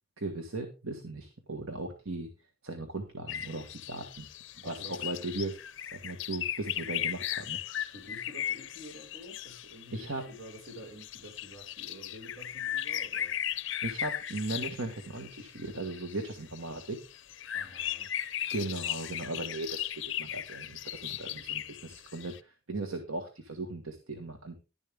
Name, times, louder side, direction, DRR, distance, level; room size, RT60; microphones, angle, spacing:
voice 1, 0.2-2.3 2.6-4.3 4.6-5.6 5.9-7.7 9.9-10.3 13.8-17.0 18.5-24.6, right 2 dB, 75° right, 1.6 m, -37 dB
sound 1, 3.3-22.4, left 11 dB, 55° left, 0.6 m, -37 dB
voice 2, 4.6-5.1 7.8-13.3 17.5-18.1, equal, 60° right, 4.8 m, -49 dB
12.0 x 10.5 x 3.5 m
head